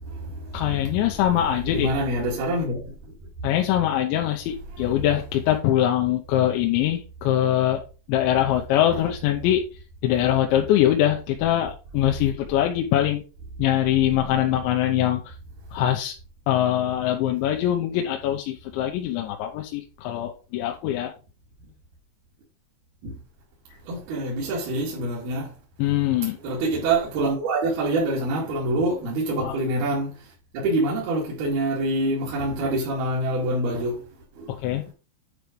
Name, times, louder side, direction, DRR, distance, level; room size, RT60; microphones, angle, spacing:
voice 1, 0.0-1.2 1.6-3.1 4.7-4.9 8.9-9.0 23.0-23.2 23.8-25.5 26.4-34.0 34.4-34.5, right 2 dB, 60° right, 3.9 m, -26 dB
voice 2, 0.5-1.9 3.4-7.8 8.1-9.6 10.0-13.2 13.6-15.3 15.7-16.2 16.5-21.1 25.8-26.4 29.4-29.5 34.5-34.9, left 12 dB, 85° left, 3.3 m, -23 dB
10.5 x 4.6 x 5.2 m
omnidirectional pair, 5.1 m